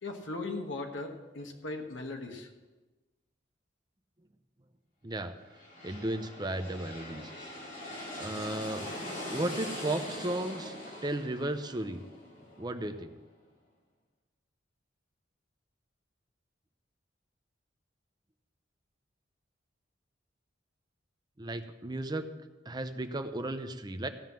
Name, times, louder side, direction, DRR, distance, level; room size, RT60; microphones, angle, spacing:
voice 1, 0.0-2.5, left 2 dB, 85° left, 3 dB, 1.3 m, -38 dB
voice 2, 5.0-5.3 5.8-7.3 8.2-8.9 9.3-10.8 11.0-12.0 12.6-13.1 21.4-22.3 22.6-24.1, right 1 dB, 20° right, 8 dB, 0.7 m, -34 dB
sound 1, 5.4-13.1, left 1 dB, 45° left, 3.1 m, -42 dB
15.0 x 5.6 x 7.4 m, 1.2 s
head